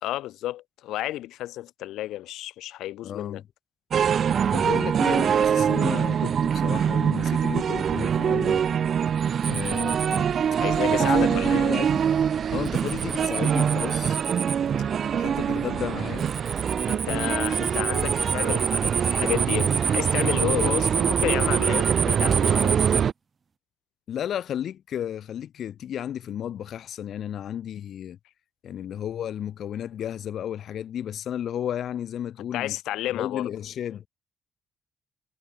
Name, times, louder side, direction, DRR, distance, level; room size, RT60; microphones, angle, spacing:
voice 1, 0.0-3.4 10.6-11.7 16.9-22.9 32.5-33.5, left 14 dB, 85° left, 5.3 m, -31 dB
voice 2, 3.0-3.4 4.5-8.6 9.5-10.3 10.9-12.0 12.5-14.2 15.1-16.3 24.1-28.2 28.6-32.8 33.1-34.1, left 10 dB, 65° left, 2.5 m, -33 dB
sound 1, 3.9-23.1, right 8 dB, 55° right, 0.4 m, -24 dB
sound 2, 9.4-10.2 12.7-14.6 16.2-23.0, right 5 dB, 40° right, 1.5 m, -28 dB
cardioid pair, 90°, 0 cm